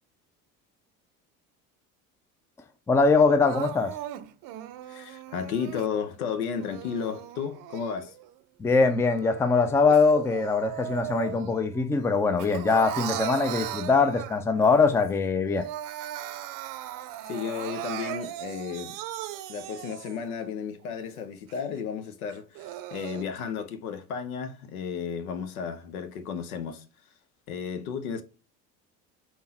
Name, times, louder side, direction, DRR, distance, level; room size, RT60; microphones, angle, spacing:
voice 1, 2.9-3.9 8.6-15.7, left 4 dB, 5° left, 0.4 m, -22 dB
Crying sobbing, 3.5-5.9 6.5-8.3 8.7-11.7 12.0-14.6 15.1-15.2 15.4-20.3 20.8-20.9 21.5-21.6 22.3-23.2, right 12 dB, 50° right, 0.6 m, -37 dB
voice 2, 4.9-8.1 17.3-19.0 19.5-26.8 27.5-28.2, left 6 dB, 80° left, 0.8 m, -33 dB
4.3 x 3.6 x 2.8 m
hypercardioid pair, 70°, 42 cm